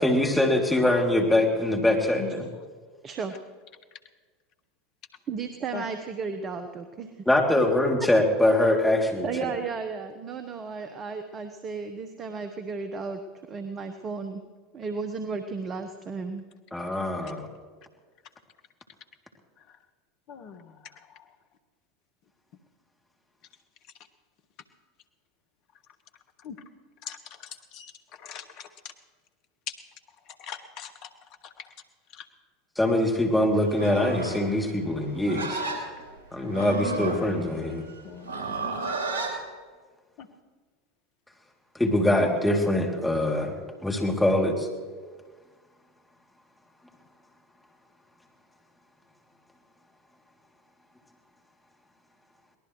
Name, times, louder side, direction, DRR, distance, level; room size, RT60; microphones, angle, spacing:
voice 1, 0.0-2.4 7.3-9.5 16.7-17.5 32.8-35.6 36.3-37.8 41.8-44.7, left 1 dB, 5° left, 0 dB, 3.0 m, -23 dB
voice 2, 3.0-3.3 5.3-7.1 9.2-13.2 13.5-14.4 14.7-16.4, right 5 dB, 35° right, 8 dB, 1.1 m, -34 dB
voice 3, 20.3-21.3 26.4-26.6 27.0-28.9 29.7-29.8 30.3-31.7 32.1-32.3 37.0-37.2 38.0-38.3 40.2-40.3, left 8 dB, 50° left, 9 dB, 1.4 m, -42 dB
Livestock farm animals working animals, 33.7-39.4, right 3 dB, 75° right, 2.8 m, -33 dB
23.0 x 18.5 x 3.2 m, 1.5 s
hypercardioid pair, 85°, 0 cm